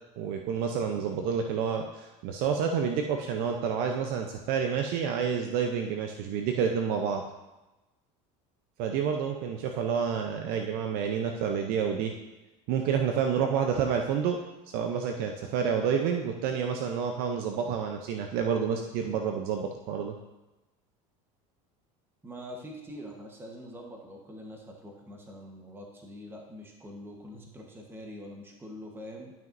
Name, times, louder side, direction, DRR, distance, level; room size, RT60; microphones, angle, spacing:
voice 1, 0.2-7.2 8.8-12.1 12.7-14.4 14.7-20.1, right 7 dB, 65° right, 4 dB, 0.6 m, -29 dB
voice 2, 22.2-29.3, equal, 15° right, 1 dB, 1.1 m, -44 dB
12.0 x 6.0 x 2.6 m, 1.1 s
supercardioid pair, 115°, 17 cm